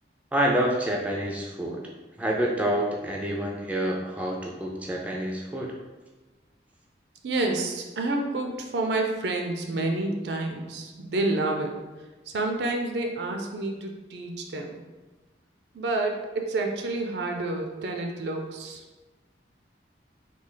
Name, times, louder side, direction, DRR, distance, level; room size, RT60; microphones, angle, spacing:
voice 1, 0.3-1.8 2.2-5.7, right 1 dB, 10° right, -2 dB, 0.3 m, -27 dB
voice 2, 7.2-11.8 12.3-14.8 15.7-18.8, right 2 dB, 70° right, 3 dB, 0.5 m, -29 dB
3.2 x 2.3 x 3.8 m, 1.2 s
head